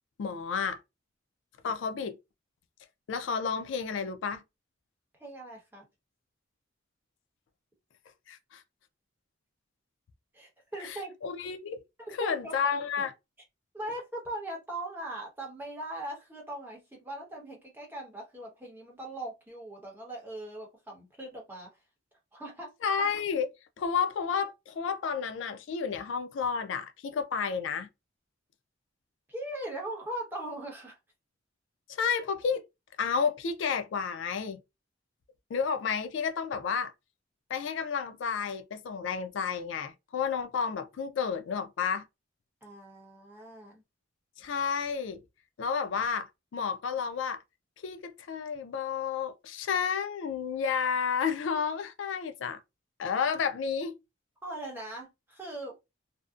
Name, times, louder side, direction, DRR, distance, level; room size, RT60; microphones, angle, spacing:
voice 1, 0.2-0.8 1.6-2.2 3.1-4.4 8.3-8.6 10.8-11.8 12.1-13.1 22.8-23.5 23.8-27.9 31.9-32.6 33.0-34.6 35.5-36.9 37.5-42.0 44.4-45.2 45.6-47.4 47.8-52.6 53.0-54.0, left 6 dB, 70° left, 0.3 m, -31 dB
voice 2, 5.2-5.8 10.3-11.1 12.0-12.8 13.7-21.7 22.3-22.7 29.3-31.0 42.6-43.8 54.4-55.8, right 1 dB, 10° right, 0.9 m, -40 dB
2.6 x 2.0 x 2.4 m
head